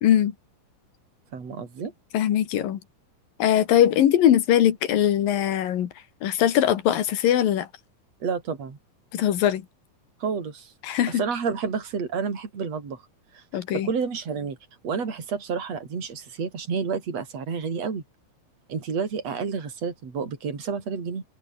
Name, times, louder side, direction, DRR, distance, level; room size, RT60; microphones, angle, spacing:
voice 1, 0.0-0.3 2.1-2.8 3.4-5.9 6.2-7.7 9.1-9.6 10.8-11.2 13.5-13.9, left 11 dB, 85° left, 3.5 m, -21 dB
voice 2, 1.3-1.9 8.2-8.8 10.2-13.0 13.3-13.4 13.7-14.6 14.8-18.0 18.7-21.2, right 5 dB, 45° right, 5.3 m, -30 dB
omnidirectional pair, 4.0 m